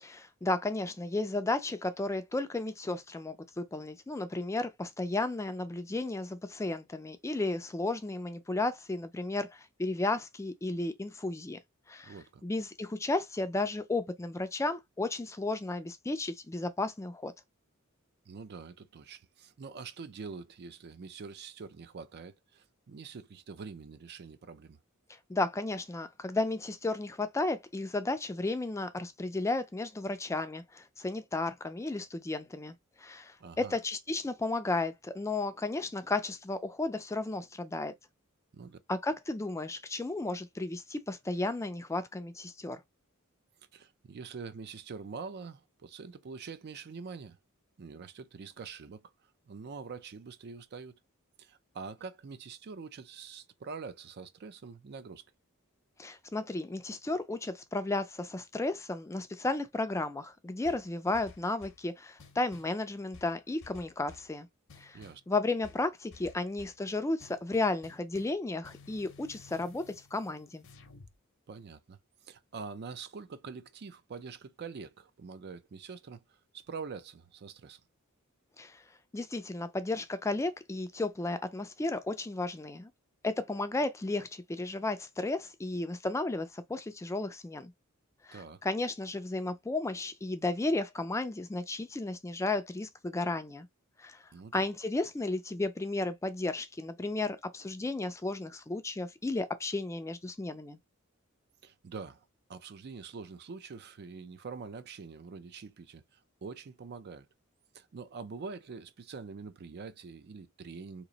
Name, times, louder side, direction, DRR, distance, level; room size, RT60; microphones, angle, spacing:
voice 1, 0.0-11.6 11.9-12.1 12.4-17.3 25.3-37.9 38.9-42.8 56.0-64.5 64.8-65.0 65.3-70.6 78.6-78.8 79.1-82.9 83.2-87.7 88.2-93.7 94.0-94.2 94.5-100.8, left 2 dB, 15° left, 0.4 m, -33 dB
voice 2, 12.0-12.4 18.3-24.8 33.4-33.8 38.5-38.8 43.7-47.4 47.8-49.1 49.5-51.0 51.4-55.2 64.9-65.2 71.5-77.8 88.3-88.6 94.3-94.6 101.6-107.3 107.7-111.0, right 5 dB, 50° right, 0.4 m, -45 dB
sound 1, 60.6-61.9 62.2-62.8 63.1-64.3 64.7-65.3 65.6-66.8 67.2-68.4 68.6-71.1, left 4 dB, 65° left, 0.7 m, -55 dB
3.0 x 2.5 x 3.9 m
head